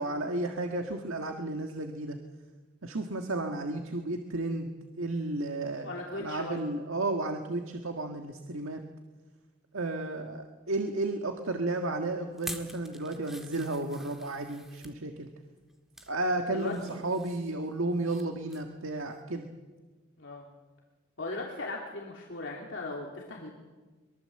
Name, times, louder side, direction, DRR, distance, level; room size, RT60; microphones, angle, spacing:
voice 1, 0.0-2.2 2.8-4.7 5.0-8.8 9.7-15.3 16.1-19.5, right 2 dB, 75° right, 4 dB, 1.7 m, -33 dB
voice 2, 5.8-6.6 16.5-17.0 20.2-20.5 21.2-23.5, left 2 dB, 60° left, -1 dB, 3.1 m, -38 dB
sound 1, 12.3-15.0 15.6-16.1 16.5-18.2 18.5-18.7 19.1-19.2, equal, ahead, 1.7 m, -46 dB
23.5 x 22.5 x 7.8 m, 1.3 s
head